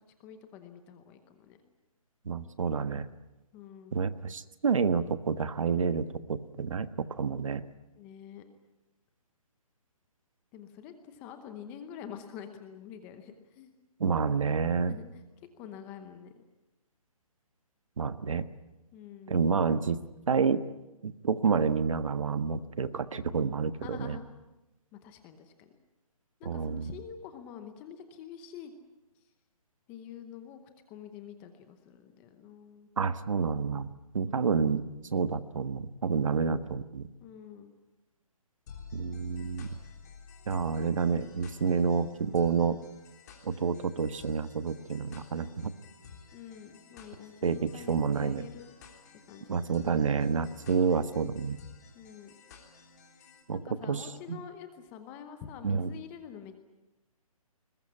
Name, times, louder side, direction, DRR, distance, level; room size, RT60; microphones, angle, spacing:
voice 1, 0.2-1.6 3.5-4.0 7.9-8.4 10.5-13.7 14.9-15.2 15.6-16.4 18.9-19.4 23.8-24.3 24.9-25.7 26.4-28.7 29.9-30.6 30.9-32.9 34.3-34.7 37.2-37.7 46.3-48.7 49.3-49.8 51.9-52.3 53.5-56.6, left 8 dB, 10° left, 8 dB, 0.9 m, -47 dB
voice 2, 2.2-3.1 3.9-7.6 14.0-15.0 18.0-18.4 19.3-20.0 20.3-20.6 21.0-24.2 26.4-26.9 33.0-33.9 34.1-34.8 35.1-37.1 38.9-39.7 40.5-42.8 43.4-45.7 47.4-48.4 49.5-51.6 53.5-54.4 55.6-55.9, right 5 dB, 60° right, 12 dB, 1.4 m, -29 dB
sound 1, 38.7-53.4, left 6 dB, 30° left, 3.5 m, -52 dB
21.0 x 21.0 x 9.9 m, 1.0 s
hypercardioid pair, 175°, 19 cm